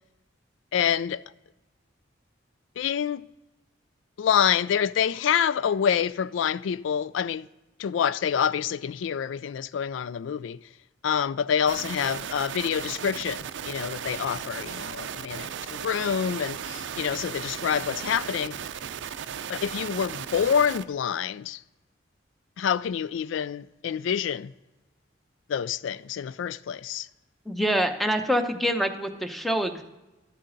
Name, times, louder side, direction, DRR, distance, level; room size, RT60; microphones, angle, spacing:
voice 1, 0.7-1.2 2.8-3.3 4.2-7.5 7.8-10.6 11.0-18.5 19.5-21.6 22.6-24.5 25.5-27.1, left 8 dB, 80° left, 0.3 m, -27 dB
sound 1, 11.7-20.8, right 8 dB, 70° right, 0.5 m, -36 dB
voice 2, 27.5-29.8, equal, ahead, 0.7 m, -25 dB
12.0 x 8.4 x 3.9 m
head